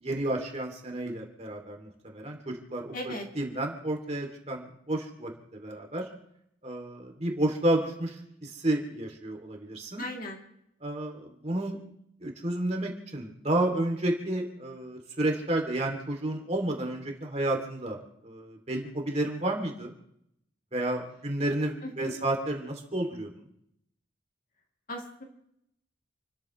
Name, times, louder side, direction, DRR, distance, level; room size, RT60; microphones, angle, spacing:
voice 1, 0.0-6.0 6.6-10.0 10.8-11.8 12.2-19.9 20.7-23.3, right 1 dB, 35° right, 2 dB, 2.7 m, -31 dB
voice 2, 2.9-3.2 10.0-10.4 21.8-22.1 24.9-25.2, left 1 dB, 45° left, 0 dB, 2.9 m, -37 dB
29.5 x 13.0 x 3.2 m, 0.74 s
head